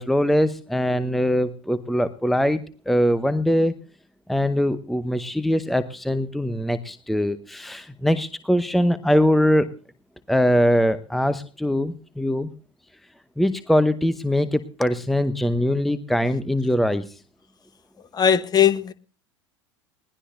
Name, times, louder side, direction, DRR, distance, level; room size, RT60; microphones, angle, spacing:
voice 1, 0.0-2.6 2.9-3.7 4.3-9.7 10.3-12.5 13.4-17.0, equal, ahead, 0.8 m, -22 dB
voice 2, 18.2-18.9, left 8 dB, 25° left, 1.1 m, -18 dB
21.0 x 18.0 x 2.7 m
figure-of-eight pair, 80°, 16 cm